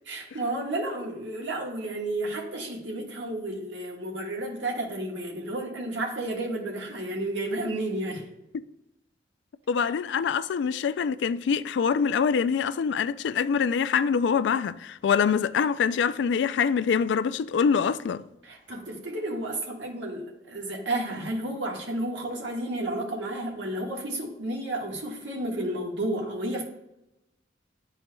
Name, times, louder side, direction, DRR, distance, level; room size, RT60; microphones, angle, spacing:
voice 1, 0.1-8.3 18.4-26.6, right 1 dB, 80° right, 1.5 m, -32 dB
voice 2, 9.7-18.2, left 6 dB, 75° left, 0.3 m, -25 dB
10.5 x 4.5 x 2.2 m
head